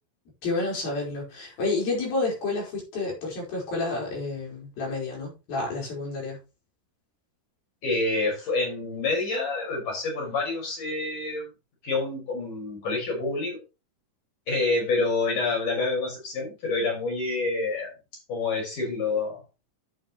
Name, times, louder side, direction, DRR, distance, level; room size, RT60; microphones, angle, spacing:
voice 1, 0.4-6.4, left 3 dB, 90° left, 6.9 m, -30 dB
voice 2, 7.8-11.5 11.8-13.6 14.5-17.9 18.3-19.4, left 3 dB, 60° left, 7.1 m, -27 dB
11.0 x 8.2 x 3.2 m
omnidirectional pair, 4.1 m